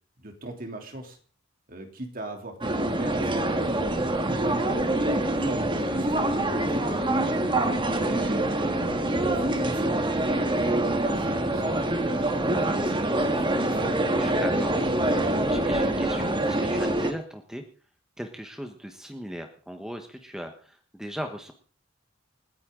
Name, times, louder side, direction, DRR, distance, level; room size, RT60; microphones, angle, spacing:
voice 1, 0.2-1.2 1.7-3.8 4.2-4.8 5.4-7.3 7.9-10.1 10.7-12.0 12.7-13.9, right 1 dB, 45° right, 4 dB, 3.1 m, -39 dB
sound 1, 2.6-17.1, right 1 dB, 25° right, 1.6 m, -25 dB
voice 2, 14.2-14.8 15.5-17.6 18.2-21.5, equal, 5° right, 4 dB, 1.2 m, -37 dB
28.5 x 9.7 x 3.8 m, 0.41 s
head